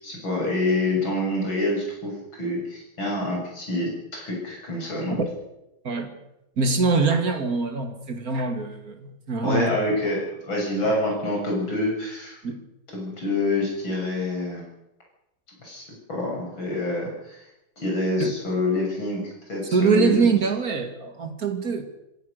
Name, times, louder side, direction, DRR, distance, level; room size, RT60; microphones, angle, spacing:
voice 1, 0.0-5.2 9.4-12.4 12.9-14.6 15.6-17.4 17.8-20.3, left 2 dB, 70° left, -1 dB, 7.7 m, -27 dB
voice 2, 6.6-9.7 12.4-12.6 18.2-18.3 19.7-21.8, right 4 dB, 45° right, 7 dB, 2.7 m, -23 dB
26.5 x 15.5 x 6.7 m, 0.89 s
omnidirectional pair, 2.2 m